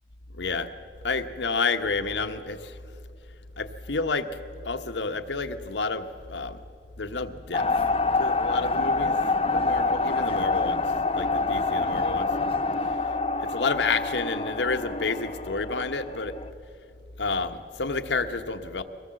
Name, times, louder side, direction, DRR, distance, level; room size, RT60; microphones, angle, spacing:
voice 1, 0.4-0.7 1.0-2.8 3.6-4.3 4.6-6.6 7.0-7.7 8.2-9.2 9.5-10.8 11.1-12.5 13.4-16.3 17.2-18.8, left 4 dB, 90° left, 8 dB, 1.1 m, -29 dB
sound 1, 7.5-16.5, left 3 dB, 35° left, 0.7 m, -26 dB
23.0 x 18.0 x 7.6 m, 2.4 s
head